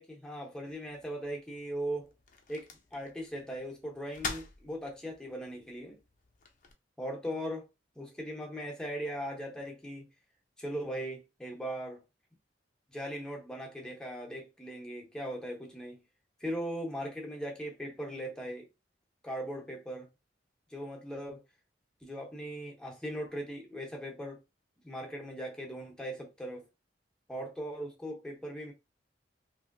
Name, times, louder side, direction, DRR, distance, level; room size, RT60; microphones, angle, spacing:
voice 1, 0.0-2.1 2.5-6.0 7.0-7.7 8.0-10.1 10.6-12.0 12.9-16.0 16.4-18.7 19.2-20.1 20.7-21.4 22.0-24.4 24.8-26.7 27.3-28.7, equal, 5° left, 0.8 m, -39 dB
sound 1, 0.7-6.7, left 4 dB, 45° left, 0.5 m, -46 dB
3.0 x 2.6 x 2.5 m
head